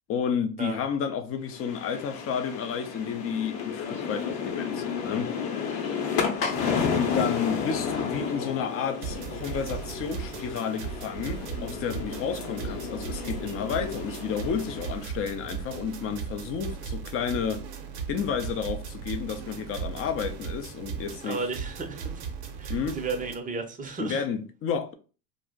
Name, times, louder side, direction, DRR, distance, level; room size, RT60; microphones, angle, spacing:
voice 1, 0.1-5.4 6.9-17.6 18.1-21.5 22.7-23.0 24.0-24.9, left 7 dB, 30° left, 0.4 m, -31 dB
sound 1, 1.5-15.0, left 6 dB, 50° left, 0.8 m, -32 dB
sound 2, 9.0-23.3, right 7 dB, 50° right, 0.7 m, -37 dB
voice 2, 21.2-22.2 22.6-24.2, right 4 dB, 15° right, 0.6 m, -34 dB
2.4 x 2.1 x 3.5 m
hypercardioid pair, 85°, 49 cm